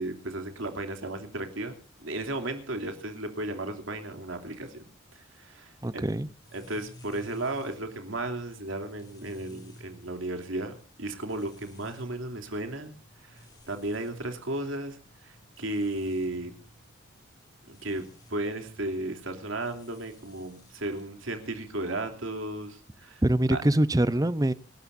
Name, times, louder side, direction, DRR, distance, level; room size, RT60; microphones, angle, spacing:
voice 1, 0.0-1.7 2.0-4.8 5.1-6.0 6.5-10.7 11.0-12.9 13.2-16.5 17.7-23.2 23.5-23.6, right 2 dB, 85° right, 6 dB, 3.0 m, -34 dB
voice 2, 5.8-6.3 23.2-24.5, right 1 dB, 20° right, 15 dB, 0.7 m, -24 dB
sound 1, 6.4-21.1, left 1 dB, 20° left, 3.6 m, -55 dB
27.0 x 13.0 x 2.6 m, 0.34 s
head